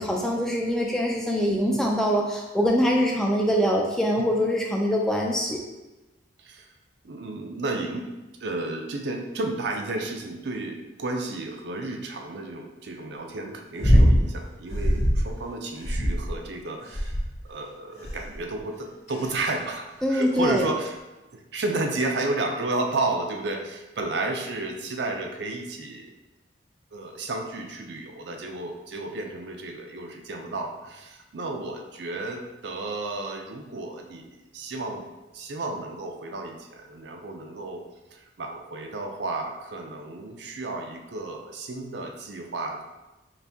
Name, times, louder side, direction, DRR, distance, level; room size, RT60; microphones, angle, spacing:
voice 1, 0.0-5.6 20.0-20.6, equal, 5° left, -1 dB, 0.3 m, -24 dB
voice 2, 7.0-8.1 8.4-17.2 17.5-21.0 21.3-26.1 26.9-34.3 34.5-35.0 35.3-37.8 38.1-42.8, right 2 dB, 60° right, 3 dB, 0.5 m, -32 dB
sound 1, 13.8-14.3 14.7-15.3 15.8-16.4 16.9-17.4 18.0-18.4 19.1-19.5 20.4-20.5, equal, 40° left, 1.1 m, -21 dB
4.0 x 2.6 x 3.4 m, 1.1 s
head